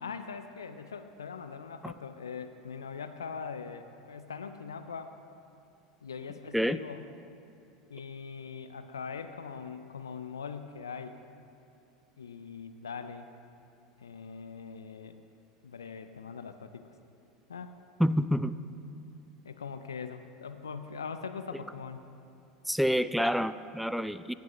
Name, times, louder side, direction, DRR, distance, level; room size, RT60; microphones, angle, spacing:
voice 1, 0.0-5.1 6.0-7.0 7.9-11.2 12.2-13.3 14.0-15.2 15.6-16.9 17.5-17.8 19.4-22.0, left 5 dB, 90° left, 9 dB, 0.4 m, -41 dB
voice 2, 18.0-18.6 22.7-24.3, equal, ahead, 14 dB, 0.3 m, -28 dB
17.0 x 8.3 x 3.0 m, 2.7 s
hypercardioid pair, 80°, 2 cm